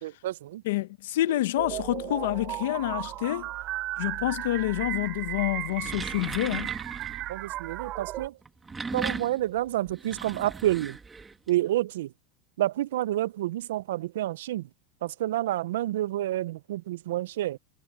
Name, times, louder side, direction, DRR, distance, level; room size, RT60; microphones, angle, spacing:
voice 1, 0.0-0.6 7.3-8.3 8.9-11.0 11.5-12.1 12.6-14.6 15.0-17.6, right 14 dB, 75° right, 0.4 m, -29 dB
voice 2, 0.6-3.5 4.0-6.7, left 16 dB, 65° left, 0.9 m, -28 dB
sound 1, 1.6-8.3, right 16 dB, 30° right, 2.6 m, -35 dB
sound 2, 5.6-7.3 8.4-11.5, right 4 dB, 10° right, 1.4 m, -37 dB
supercardioid pair, 175°, 0 cm